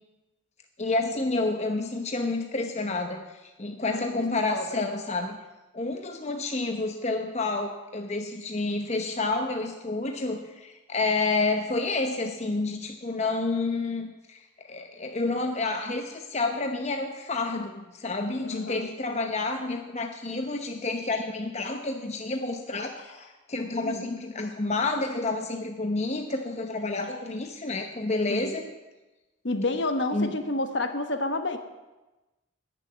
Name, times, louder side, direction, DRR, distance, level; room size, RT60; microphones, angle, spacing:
voice 1, 0.8-5.4 5.7-28.6 30.1-30.3, left 3 dB, 35° left, 5 dB, 0.8 m, -29 dB
voice 2, 3.8-4.2 4.5-4.9 18.4-18.9 23.8-24.0 28.3-28.6 29.4-31.6, left 2 dB, 60° left, 7 dB, 1.3 m, -30 dB
15.5 x 6.9 x 9.2 m, 1.1 s
head